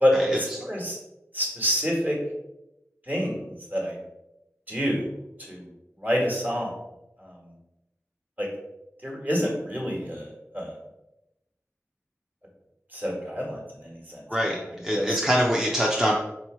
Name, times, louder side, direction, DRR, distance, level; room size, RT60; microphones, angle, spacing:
voice 1, 0.0-1.0 1.3-2.2 3.1-4.0 4.7-5.0 5.5-5.6 6.0-6.7 7.2-7.3 8.4-8.5 9.0-10.7 12.9-14.2 14.5-14.6 14.9-15.2, equal, 30° right, -2 dB, 1.4 m, -27 dB
voice 2, 14.3-16.1, equal, 5° right, -3 dB, 0.6 m, -24 dB
3.7 x 3.0 x 4.4 m, 0.91 s
wide cardioid pair, 50°, 5 cm